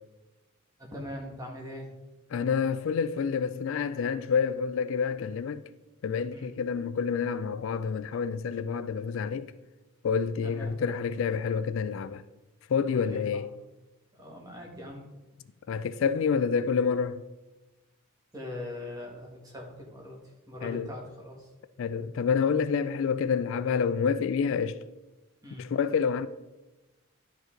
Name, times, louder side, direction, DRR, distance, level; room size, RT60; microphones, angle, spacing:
voice 1, 0.8-1.9 6.3-6.5 10.4-10.8 12.9-13.4 14.1-15.1 18.3-21.5 25.4-25.7, left 1 dB, 15° right, 1.7 m, -41 dB
voice 2, 2.3-5.6 6.0-9.5 10.0-12.2 12.7-13.5 15.7-17.2 20.6-20.9 21.8-24.8 25.6-26.3, left 6 dB, 60° left, 0.3 m, -28 dB
11.0 x 5.2 x 3.8 m
head